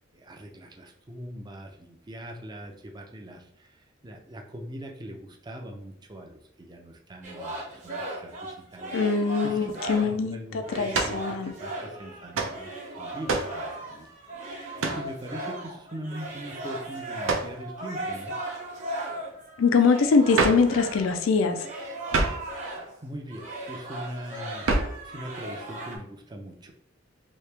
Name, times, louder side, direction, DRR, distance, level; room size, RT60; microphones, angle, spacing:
voice 1, 0.1-8.9 9.2-9.7 10.0-12.7 13.0-14.1 14.5-18.3 22.7-26.7, right 1 dB, 20° right, 2 dB, 0.5 m, -41 dB
sound 1, 7.2-10.2 10.6-23.0 23.3-26.0, right 1 dB, 40° right, 1.0 m, -37 dB
voice 2, 8.9-10.4 10.7-11.5 19.6-21.7, left 4 dB, 80° left, 8 dB, 0.4 m, -23 dB
sound 2, 10.9-11.2 12.3-12.6 13.3-13.6 14.8-15.1 17.2-17.6 20.3-20.7 22.1-22.5 24.6-25.0, right 3 dB, 75° right, 0.6 m, -26 dB
3.1 x 2.8 x 3.3 m, 0.66 s
head